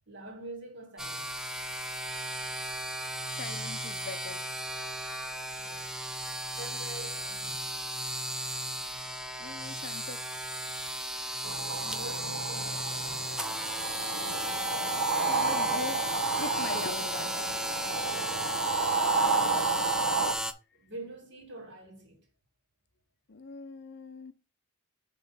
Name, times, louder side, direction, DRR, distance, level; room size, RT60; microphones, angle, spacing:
voice 1, 0.1-1.4 5.6-5.9 6.6-7.7 11.8-13.3 20.7-22.3, right 2 dB, 55° right, 2.1 m, -46 dB
sound 1, 1.0-20.5, equal, 5° right, 0.4 m, -35 dB
voice 2, 3.2-4.5 9.4-10.4 15.3-16.0 16.4-17.7 23.3-24.3, left 4 dB, 50° left, 0.6 m, -41 dB
sound 2, 11.4-20.3, right 4 dB, 70° right, 0.8 m, -31 dB
5.7 x 3.8 x 5.4 m
head